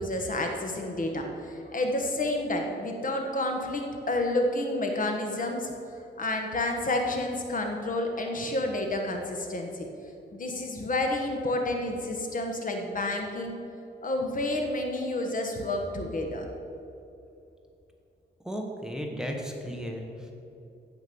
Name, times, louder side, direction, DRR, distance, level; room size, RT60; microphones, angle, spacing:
voice 1, 0.0-5.7 6.2-9.9 10.3-13.6 14.0-16.5, left 1 dB, 45° left, 3 dB, 1.3 m, -30 dB
voice 2, 18.4-20.3, equal, 5° right, 1 dB, 1.1 m, -35 dB
15.5 x 5.2 x 6.9 m, 2.7 s
wide cardioid pair, 135°, 19 cm